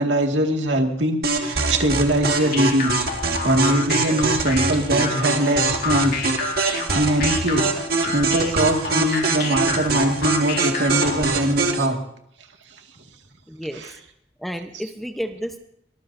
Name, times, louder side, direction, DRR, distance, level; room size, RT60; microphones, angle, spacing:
voice 1, 0.0-3.1 3.4-12.0 13.7-13.9, right 1 dB, 85° right, 2 dB, 2.1 m, -22 dB
sound 1, 1.2-11.9, right 3 dB, 60° right, 2.0 m, -24 dB
sound 2, 2.2-11.4, left 5 dB, 55° left, 2.0 m, -30 dB
voice 2, 13.5-13.9 14.4-15.6, equal, ahead, 5 dB, 0.9 m, -31 dB
23.0 x 20.0 x 2.7 m, 0.73 s
head